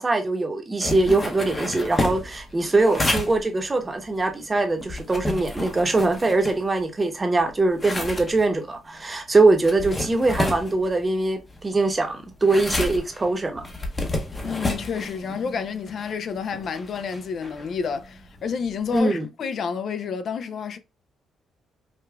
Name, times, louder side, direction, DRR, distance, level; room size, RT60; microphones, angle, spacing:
voice 1, 0.0-13.7 18.9-19.3, right 2 dB, 25° right, 0.8 m, -22 dB
sound 1, 0.8-7.0 7.4-19.0, left 2 dB, 25° left, 0.7 m, -31 dB
voice 2, 14.4-20.8, left 6 dB, 60° left, 0.3 m, -30 dB
4.9 x 2.2 x 2.3 m
cardioid pair, 90°, 0 cm